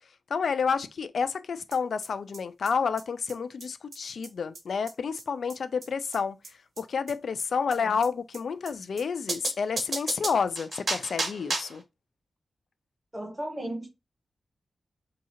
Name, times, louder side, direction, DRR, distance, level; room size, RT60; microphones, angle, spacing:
voice 1, 0.3-6.4 6.8-11.8, left 5 dB, 70° left, 0.4 m, -29 dB
sound 1, 1.7-1.8 2.0-2.1 2.3-2.4 2.7-2.8 3.0-3.1 3.3-3.4 3.6-3.7 3.9-4.0 4.2-4.3 4.5-4.6 4.9-5.0 5.2-5.3 5.5-5.6 5.8-5.9 6.1-6.2 6.4-6.5 6.8-6.9 7.1-7.2 7.4-7.5 7.7-7.8 8.0-8.1 8.3-8.4 8.7-8.8 9.0-9.1 9.3-11.8, right 3 dB, 55° right, 1.3 m, -33 dB
voice 2, 13.1-13.9, right 1 dB, 15° right, 0.9 m, -35 dB
3.6 x 2.9 x 4.2 m
wide cardioid pair, 130°, 0 cm